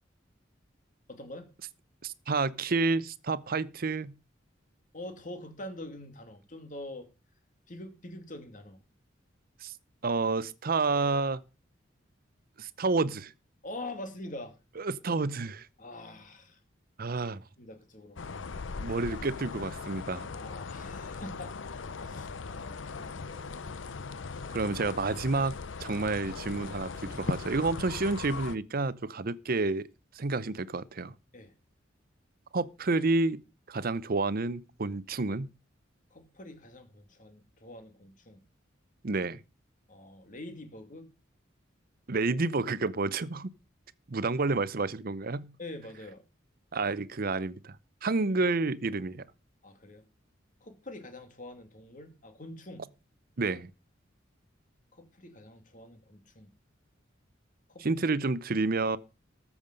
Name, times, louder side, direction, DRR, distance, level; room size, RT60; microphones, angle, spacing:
voice 1, 1.1-1.5 4.9-7.1 7.7-8.8 13.6-14.5 15.8-16.6 17.6-18.2 20.3-23.6 31.3-31.5 36.1-38.4 39.9-41.1 45.6-46.2 49.6-50.0 50.6-52.9 54.9-56.5 57.7-57.9 58.1-58.2, left 1 dB, 45° left, 2.4 m, -45 dB
voice 2, 2.0-4.2 9.6-9.7 10.0-11.4 12.6-13.3 14.8-15.7 17.0-17.4 18.8-20.3 24.5-29.9 30.1-31.1 32.5-33.4 33.7-35.5 39.0-39.4 42.1-43.5 44.1-45.5 46.7-47.8 48.0-49.2 53.4-53.7 57.8-59.0, right 3 dB, 50° right, 0.7 m, -29 dB
sound 1, 18.2-28.6, left 4 dB, 75° left, 0.7 m, -39 dB
13.5 x 7.3 x 5.2 m
head